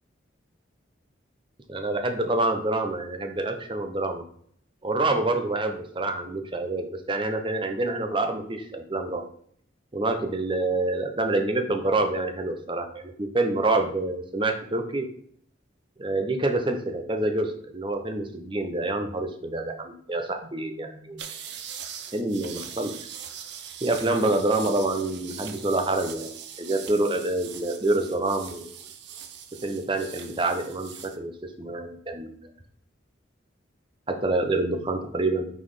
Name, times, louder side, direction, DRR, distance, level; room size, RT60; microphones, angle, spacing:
voice 1, 1.7-4.2 4.8-9.2 9.9-15.0 16.0-21.2 22.1-22.9 23.8-28.7 29.6-31.3 31.6-32.4 34.1-35.5, right 2 dB, 25° right, 6 dB, 0.7 m, -27 dB
sound 1, 21.2-31.2, right 8 dB, 60° right, 0.6 m, -41 dB
5.5 x 4.2 x 4.9 m, 0.62 s
head